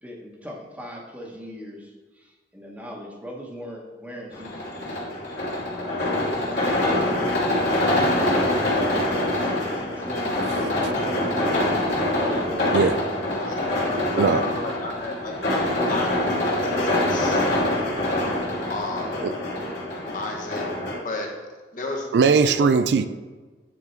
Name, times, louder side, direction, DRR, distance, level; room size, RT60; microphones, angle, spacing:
voice 1, 0.0-5.1 6.4-7.7 8.7-11.6 12.2-13.9, equal, 10° right, 1.1 m, -39 dB
sound 1, 4.3-20.9, left 1 dB, 85° left, 2.5 m, -24 dB
voice 2, 14.1-15.4 15.6-17.4 18.7-19.3 20.1-20.6 21.0-21.3 21.7-22.8, left 2 dB, 50° left, 1.2 m, -33 dB
voice 3, 22.1-23.1, right 5 dB, 75° right, 0.4 m, -19 dB
9.6 x 3.7 x 4.5 m
head